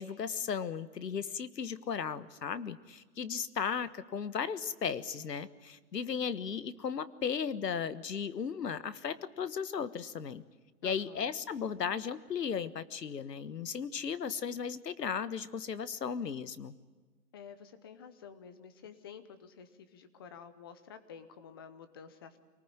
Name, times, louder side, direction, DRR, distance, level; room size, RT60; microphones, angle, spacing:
voice 1, 0.0-10.4 10.8-16.7, left 7 dB, 85° left, 15 dB, 1.5 m, -36 dB
voice 2, 10.8-11.3 17.3-22.4, left 7 dB, 15° left, 11 dB, 0.7 m, -50 dB
25.5 x 19.5 x 9.0 m, 1.4 s
hypercardioid pair, 160°, 48 cm